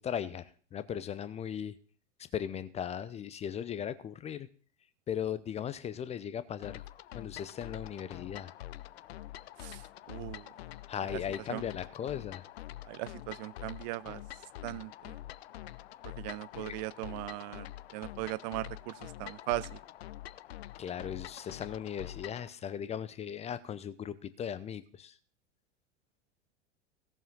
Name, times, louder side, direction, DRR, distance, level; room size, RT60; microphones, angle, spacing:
voice 1, 0.0-1.8 2.3-4.5 5.1-8.5 10.9-12.4 16.6-16.7 20.8-25.2, left 9 dB, 20° left, 0.6 m, -38 dB
sound 1, 6.6-22.5, left 14 dB, 55° left, 0.6 m, -46 dB
voice 2, 10.1-10.5 11.5-11.6 12.9-14.2 14.6-15.2 16.2-17.7 17.9-19.8, right 20 dB, 35° right, 0.5 m, -38 dB
17.0 x 7.2 x 5.5 m
figure-of-eight pair, 85°, 37 cm